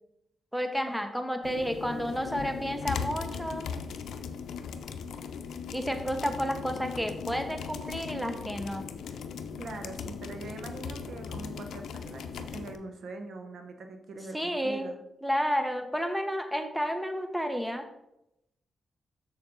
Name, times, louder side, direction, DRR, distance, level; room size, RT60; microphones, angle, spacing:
voice 1, 0.5-3.7 5.7-8.9 14.3-14.9 15.2-17.8, equal, 5° right, 6 dB, 0.9 m, -31 dB
sound 1, 1.4-12.8, left 6 dB, 85° left, 0.6 m, -38 dB
voice 2, 9.6-15.0, right 3 dB, 70° right, 6 dB, 0.9 m, -42 dB
6.8 x 6.8 x 3.9 m, 0.86 s
cardioid pair, 85°, 0 cm